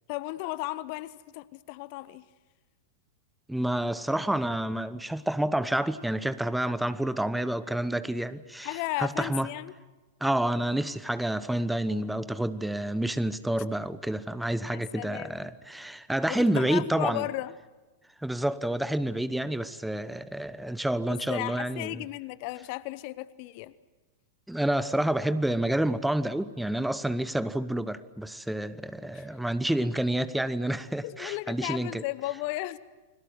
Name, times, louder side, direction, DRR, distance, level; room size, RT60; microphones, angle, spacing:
voice 1, 0.1-2.2 8.6-9.7 14.7-15.5 16.2-17.5 21.1-23.7 29.0-29.3 31.0-32.8, left 18 dB, 45° left, 0.8 m, -35 dB
voice 2, 3.5-9.5 10.2-17.2 18.2-22.0 24.5-32.0, right 1 dB, 5° right, 1.0 m, -29 dB
30.0 x 22.0 x 7.9 m
figure-of-eight pair, 95°, 0 cm